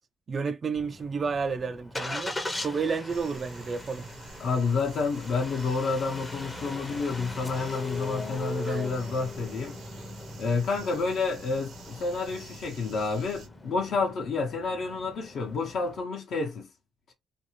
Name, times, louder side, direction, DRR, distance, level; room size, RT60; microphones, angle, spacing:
voice 1, 0.3-4.1 8.7-8.8, right 5 dB, 40° right, 0.4 m, -31 dB
Engine starting, 0.8-16.0, left 1 dB, 20° left, 0.6 m, -40 dB
sound 1, 3.1-13.5, right 4 dB, 75° right, 0.9 m, -49 dB
voice 2, 4.4-9.8 10.4-16.7, left 4 dB, 65° left, 0.8 m, -29 dB
2.6 x 2.3 x 3.0 m
cardioid pair, 90°, 0 cm